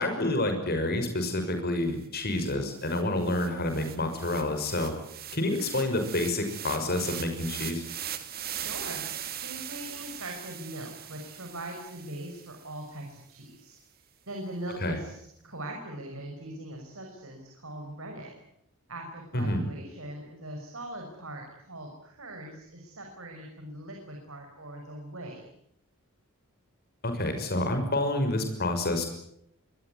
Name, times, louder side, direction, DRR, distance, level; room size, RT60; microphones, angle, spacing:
voice 1, 0.0-4.9 5.3-7.8 14.8-15.0 19.3-19.6 27.0-29.0, left 1 dB, 45° left, 7 dB, 6.1 m, -28 dB
sound 1, 2.0-2.1 2.4-12.7, right 10 dB, 45° right, 2.5 m, -40 dB
voice 2, 8.6-9.0 9.3-13.7 14.3-15.2 15.4-18.3 18.9-25.5, right 1 dB, 65° right, 2 dB, 6.0 m, -41 dB
26.0 x 20.5 x 9.6 m, 0.74 s
head